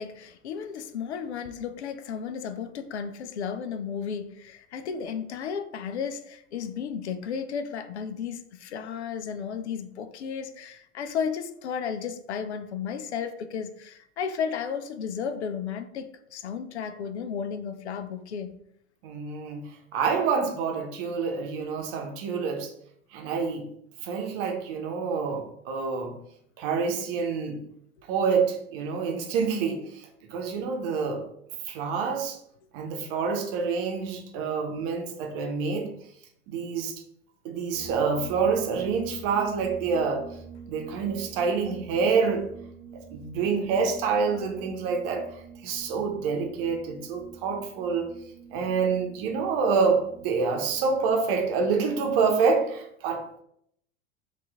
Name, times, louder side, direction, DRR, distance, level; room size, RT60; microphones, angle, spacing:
voice 1, 0.0-18.6, left 7 dB, 70° left, 0.5 m, -34 dB
voice 2, 19.0-22.7 23.1-23.7 24.0-26.1 26.6-27.6 28.1-31.2 31.7-32.4 32.7-35.9 36.5-37.0 37.4-40.2 40.7-42.5 43.1-45.3 45.6-48.1 48.5-53.4, right 5 dB, 50° right, 0.9 m, -27 dB
sound 1, 37.7-52.5, right 5 dB, 10° right, 1.1 m, -47 dB
4.2 x 2.5 x 3.5 m
figure-of-eight pair, 80°, 36 cm